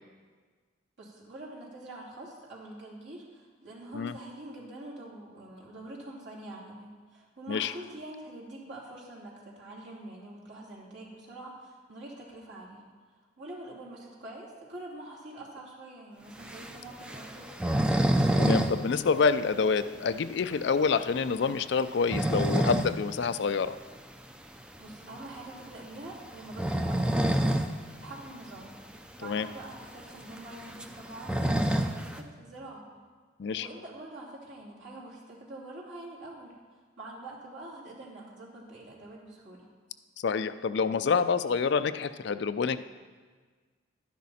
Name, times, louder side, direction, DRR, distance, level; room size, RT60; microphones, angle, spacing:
voice 1, 1.0-12.8 13.4-17.7 24.8-28.8 29.2-32.8 33.5-39.7, right 1 dB, 65° right, -5 dB, 3.1 m, -45 dB
sound 1, 16.4-18.7 19.0-19.1 19.5-19.6 20.1-20.2 21.8-23.0 23.4-23.5 25.0-25.2 26.4-27.7 28.1-28.2 28.4-28.5 29.2-29.3 29.6-32.2, right 1 dB, 5° right, 0.4 m, -27 dB
voice 2, 18.4-23.8 29.2-29.5 33.4-33.7 40.2-42.8, left 5 dB, 60° left, 12 dB, 0.4 m, -27 dB
12.0 x 10.5 x 4.2 m, 1.5 s
head